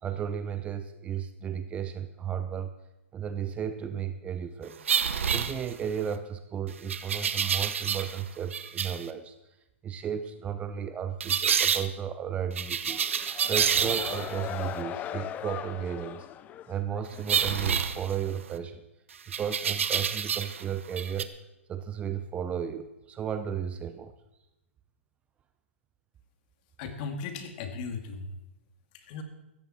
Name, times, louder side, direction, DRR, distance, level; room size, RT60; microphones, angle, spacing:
voice 1, 0.0-2.7 3.1-4.8 5.3-9.4 9.8-16.3 16.7-18.8 19.4-21.3 21.7-24.1, right 8 dB, 15° right, 11 dB, 0.7 m, -34 dB
sound 1, 4.8-6.1 6.9-8.2 8.5-9.0 11.2-11.9 12.6-14.4 17.3-18.6 19.3-20.6 20.9-21.2, right 7 dB, 70° right, 1.1 m, -28 dB
sound 2, 12.8-17.3, left 11 dB, 20° left, 0.6 m, -39 dB
voice 2, 26.8-28.3 28.9-29.2, left 5 dB, 40° left, 6 dB, 2.4 m, -37 dB
16.5 x 14.0 x 4.4 m, 0.95 s
hypercardioid pair, 130°, 7 cm